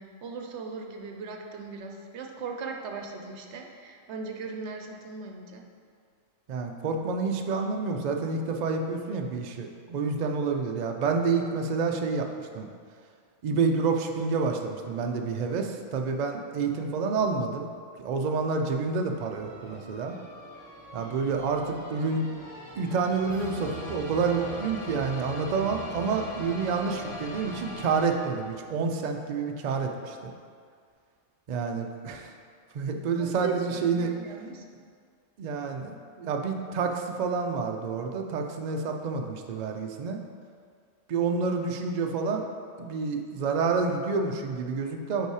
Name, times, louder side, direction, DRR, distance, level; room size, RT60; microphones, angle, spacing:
voice 1, 0.0-5.6 33.2-33.6 33.9-34.7, right 4 dB, 70° right, 3 dB, 0.9 m, -38 dB
voice 2, 6.5-12.3 12.5-12.7 13.4-17.7 18.0-20.2 20.9-22.3 22.8-30.3 31.5-32.3 32.7-34.1 35.4-40.2 41.1-42.4 42.8-45.3, right 4 dB, 90° right, 4 dB, 0.3 m, -28 dB
sound 1, 19.1-28.6, equal, 25° right, 0.9 m, -42 dB
5.4 x 4.0 x 4.7 m, 2.1 s
omnidirectional pair, 1.3 m